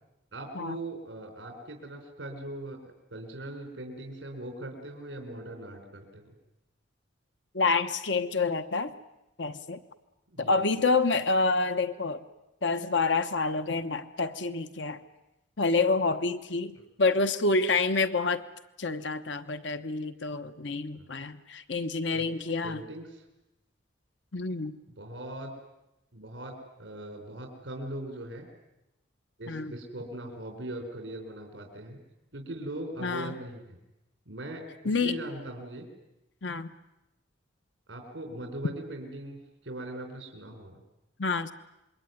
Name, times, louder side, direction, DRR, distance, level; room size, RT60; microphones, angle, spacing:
voice 1, 0.3-6.3 10.3-10.6 21.0-21.1 22.1-22.2 22.6-23.2 25.0-25.5 26.1-28.5 29.4-32.0 32.3-33.8 34.3-35.9 37.9-40.8, right 1 dB, 75° right, 3 dB, 4.4 m, -40 dB
voice 2, 7.5-8.9 9.4-9.8 10.4-12.2 12.6-15.0 15.6-18.4 18.8-22.8 24.3-24.8 29.5-29.7 33.0-33.3 34.8-35.2 36.4-36.7 41.2-41.5, left 3 dB, 75° left, 10 dB, 1.1 m, -28 dB
26.5 x 22.5 x 9.4 m, 0.93 s
head